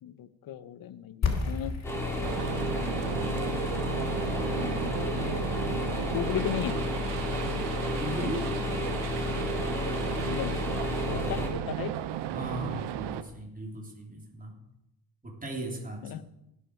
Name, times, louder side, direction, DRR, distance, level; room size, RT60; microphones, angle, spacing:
voice 1, 0.0-1.7 4.5-5.2 6.1-6.8 10.2-10.6 11.0-11.9 16.0-16.2, left 10 dB, 55° left, 14 dB, 0.9 m, -35 dB
sound 1, 1.2-7.0, left 5 dB, 40° left, 2.7 m, -36 dB
sound 2, 1.8-11.5, left 2 dB, 5° left, 3.2 m, -31 dB
sound 3, 2.2-13.2, right 11 dB, 75° right, 0.9 m, -35 dB
voice 2, 8.0-8.5 12.3-14.6 15.2-16.3, right 1 dB, 20° right, 0 dB, 3.2 m, -37 dB
17.5 x 7.5 x 4.6 m, 0.84 s
cardioid pair, 85°, 42 cm